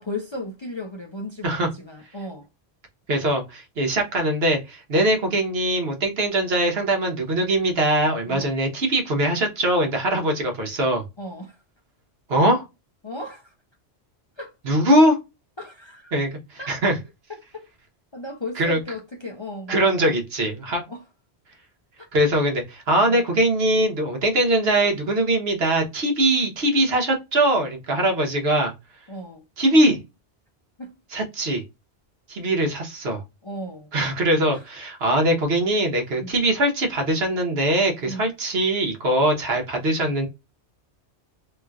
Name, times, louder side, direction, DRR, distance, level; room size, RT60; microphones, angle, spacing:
voice 1, 0.0-2.5 8.3-8.5 11.2-11.6 13.0-13.5 14.4-14.5 15.6-16.1 16.6-16.7 17.3-17.7 18.1-20.1 20.9-21.0 22.0-22.1 23.1-23.2 26.8-26.9 29.1-29.4 30.8-30.9 33.4-33.9 34.5-34.6 36.2-36.4 38.1-38.3, left 1 dB, 35° left, 0.5 m, -35 dB
voice 2, 3.1-11.0 12.3-12.6 14.6-15.2 16.1-17.0 18.6-18.8 19.7-20.8 22.1-28.7 29.6-30.0 31.1-31.6 32.3-33.2 33.9-40.3, right 1 dB, 65° right, 1.2 m, -21 dB
3.1 x 2.9 x 2.3 m
omnidirectional pair, 1.1 m